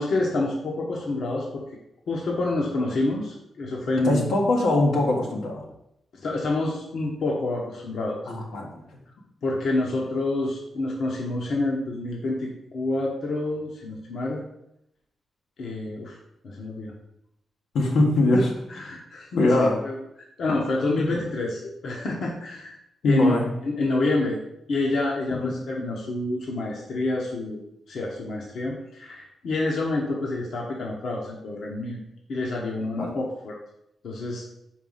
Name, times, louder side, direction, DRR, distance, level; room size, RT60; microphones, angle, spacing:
voice 1, 0.0-1.6 2.1-4.3 6.2-8.2 9.4-14.4 15.6-16.2 16.4-16.9 18.3-18.4 18.8-22.8 23.0-24.4 24.7-27.6 27.9-32.0 32.3-33.5 34.0-34.4, left 2 dB, 60° left, -2 dB, 1.1 m, -28 dB
voice 2, 4.0-5.6 8.3-9.0 17.7-18.5 19.4-19.8 23.0-23.5 25.3-25.5 33.0-33.1, left 2 dB, 90° left, -1 dB, 1.5 m, -22 dB
4.9 x 4.6 x 5.6 m, 0.81 s
wide cardioid pair, 160°, 0 cm